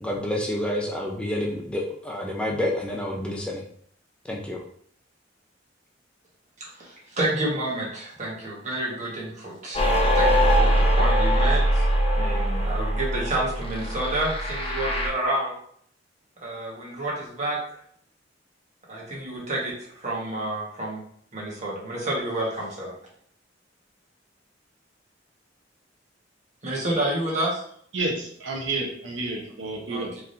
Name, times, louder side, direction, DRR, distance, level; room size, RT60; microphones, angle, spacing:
voice 1, 0.0-3.6 4.3-4.6, left 1 dB, 5° left, -1 dB, 0.5 m, -28 dB
voice 2, 6.8-11.9 12.2-15.6 16.4-17.6 18.9-21.0 21.3-22.9 26.6-27.6 29.9-30.2, right 1 dB, 40° right, -5 dB, 1.5 m, -29 dB
sound 1, 9.7-15.1, equal, 30° left, 0.8 m, -22 dB
voice 3, 27.9-30.1, right 2 dB, 85° right, -1 dB, 0.9 m, -30 dB
4.5 x 3.5 x 2.7 m, 0.64 s
head